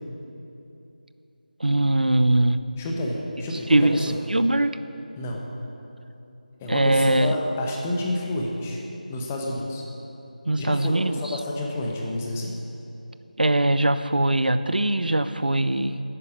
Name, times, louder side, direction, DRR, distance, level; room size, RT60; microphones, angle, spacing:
voice 1, 1.6-2.6 3.7-4.0 4.3-4.8 6.7-7.3 10.5-11.3 13.4-16.0, right 1 dB, 90° right, 12 dB, 0.7 m, -21 dB
voice 2, 2.8-4.2 5.2-5.4 6.6-8.8 9.1-9.8 10.6-12.5, left 1 dB, 15° left, -1 dB, 1.1 m, -29 dB
11.0 x 9.7 x 7.3 m, 2.9 s
figure-of-eight pair, 165°, 5 cm